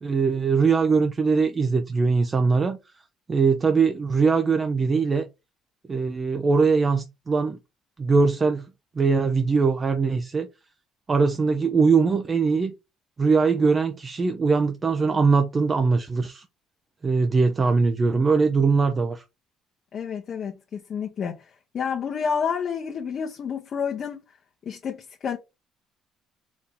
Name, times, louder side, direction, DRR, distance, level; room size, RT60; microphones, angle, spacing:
voice 1, 0.0-2.8 3.3-5.3 5.9-7.6 8.0-8.7 9.0-10.5 11.1-12.7 13.2-16.4 17.0-19.2, right 4 dB, 30° right, 0.5 m, -21 dB
voice 2, 19.9-21.4 21.7-24.2 24.7-25.4, left 6 dB, 45° left, 0.8 m, -29 dB
4.1 x 2.8 x 3.5 m
cardioid pair, 105°, 0 cm